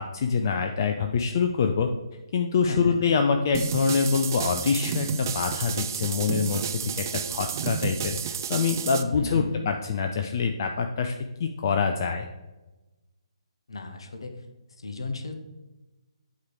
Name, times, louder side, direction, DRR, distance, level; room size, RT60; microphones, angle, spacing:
voice 1, 0.0-1.9 2.3-11.1 11.4-12.2, left 5 dB, 40° left, 5 dB, 0.4 m, -25 dB
voice 2, 2.7-3.0 9.1-9.7 13.7-14.4 14.8-15.4, left 3 dB, 60° left, 7 dB, 0.9 m, -35 dB
sound 1, 3.5-9.0, right 7 dB, 35° right, 0.4 m, -31 dB
8.1 x 3.1 x 4.8 m, 1.1 s
figure-of-eight pair, 135°, 3 cm